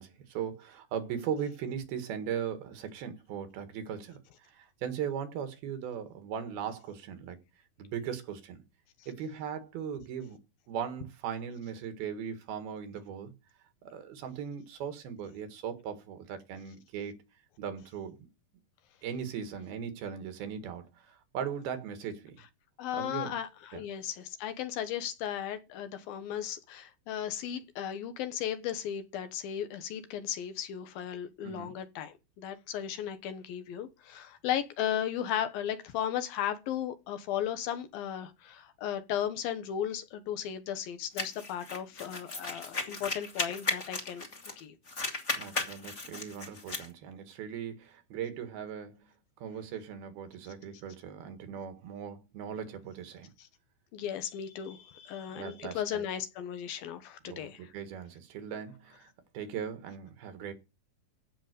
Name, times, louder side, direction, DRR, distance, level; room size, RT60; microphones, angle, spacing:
voice 1, 0.0-7.4 7.8-8.6 9.1-10.4 10.7-13.3 13.8-17.1 17.6-18.3 19.0-22.4 22.9-23.4 23.7-23.8 31.4-31.8 45.4-49.1 49.4-53.3 55.4-56.0 57.3-59.1 59.3-60.5, right 8 dB, 85° right, 3.7 m, -38 dB
voice 2, 22.8-44.3 44.6-44.7 53.4-53.5 53.9-57.7, left 10 dB, 80° left, 2.9 m, -35 dB
sound 1, 41.2-44.6 44.9-46.9, left 2 dB, 25° left, 1.8 m, -35 dB
15.5 x 5.8 x 6.7 m
omnidirectional pair, 4.2 m